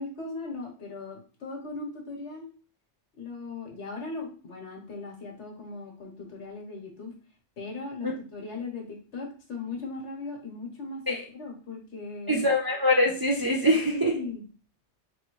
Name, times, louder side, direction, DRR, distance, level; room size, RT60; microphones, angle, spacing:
voice 1, 0.0-2.5 3.2-7.1 7.6-12.5 13.8-14.4, left 3 dB, 75° left, 1 dB, 1.5 m, -38 dB
voice 2, 12.3-14.1, left 1 dB, 30° right, -2 dB, 0.4 m, -23 dB
4.2 x 3.3 x 3.0 m, 0.39 s
omnidirectional pair, 1.2 m